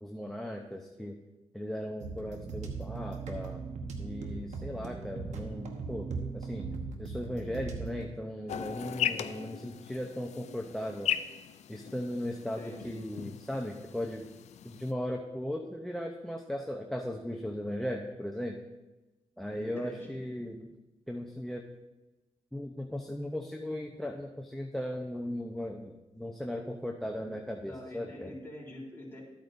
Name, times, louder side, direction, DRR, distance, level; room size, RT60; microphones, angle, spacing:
voice 1, 0.0-1.2 1.5-3.6 4.0-6.7 7.0-11.1 11.7-14.3 14.6-18.6 19.4-20.7 21.1-21.6 22.5-28.3, left 1 dB, 5° left, 2 dB, 0.7 m, -37 dB
sound 1, 2.0-8.1, right 4 dB, 85° right, 1.1 m, -39 dB
sound 2, 8.5-14.9, left 9 dB, 75° left, 0.4 m, -38 dB
voice 2, 12.4-13.0 19.5-20.3 27.6-29.2, left 1 dB, 20° left, -4 dB, 3.6 m, -46 dB
13.0 x 8.7 x 2.7 m, 1.1 s
cardioid pair, 80°, 12 cm